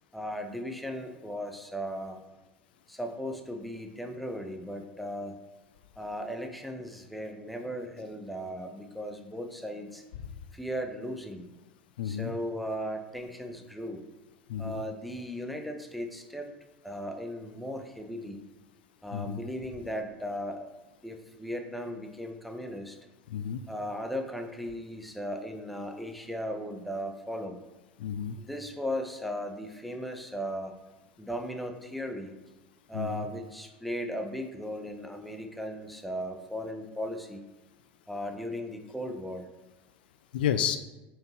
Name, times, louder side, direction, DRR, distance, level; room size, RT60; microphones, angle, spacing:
voice 1, 0.1-2.2 2.9-5.4 6.0-10.0 10.5-11.5 12.0-14.0 14.6-16.5 16.8-18.4 19.0-20.7 21.0-23.0 23.7-27.6 28.5-30.7 31.2-32.3 32.9-37.4 38.1-39.4, equal, ahead, 5 dB, 0.8 m, -37 dB
voice 2, 12.0-12.3 14.5-14.8 19.1-19.4 23.3-23.6 28.0-28.4 32.9-33.3 40.3-40.8, left 9 dB, 65° left, 10 dB, 0.4 m, -31 dB
7.4 x 4.7 x 3.0 m, 1.1 s
figure-of-eight pair, 75°, 6 cm